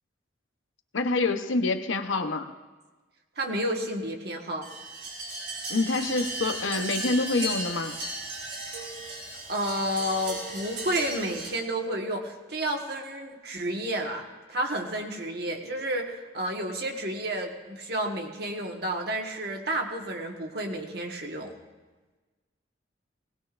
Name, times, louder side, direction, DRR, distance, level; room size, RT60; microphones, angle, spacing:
voice 1, 0.9-2.5 5.7-7.9, left 3 dB, 85° left, 7 dB, 0.9 m, -26 dB
voice 2, 3.4-4.7 9.5-21.5, right 1 dB, 55° right, 1 dB, 1.5 m, -31 dB
sound 1, 4.6-11.5, right 2 dB, 85° right, 5.5 m, -35 dB
20.0 x 18.5 x 2.5 m, 1.3 s
head